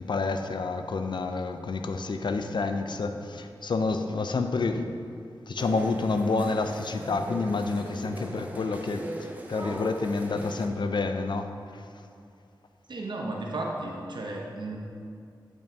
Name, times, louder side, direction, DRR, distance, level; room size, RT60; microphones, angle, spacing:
voice 1, 0.0-4.9 5.5-11.9, left 3 dB, 65° left, 7 dB, 0.4 m, -29 dB
sound 1, 5.6-10.7, right 1 dB, 20° right, 0.8 m, -39 dB
voice 2, 12.9-14.8, right 2 dB, 65° right, -1 dB, 0.8 m, -34 dB
8.9 x 5.3 x 2.8 m, 2.4 s
cardioid pair, 40°, 8 cm